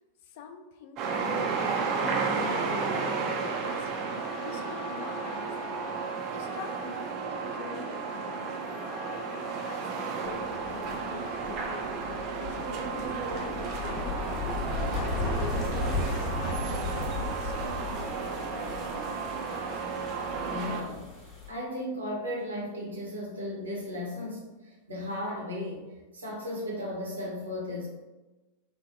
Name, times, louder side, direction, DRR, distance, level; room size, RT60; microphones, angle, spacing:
voice 1, 0.2-1.6 2.0-5.9 6.3-8.5 9.1-12.9 13.3-18.3, left 6 dB, 50° left, 5 dB, 0.3 m, -45 dB
sound 1, 1.0-20.8, right 4 dB, 40° right, 0.5 m, -33 dB
sound 2, 10.2-21.5, left 2 dB, 15° left, 0.9 m, -36 dB
voice 2, 20.4-21.1 21.5-25.9 26.1-27.9, left 1 dB, 70° right, -3 dB, 0.8 m, -35 dB
3.1 x 2.2 x 2.6 m, 1.1 s
figure-of-eight pair, 90°, 0 cm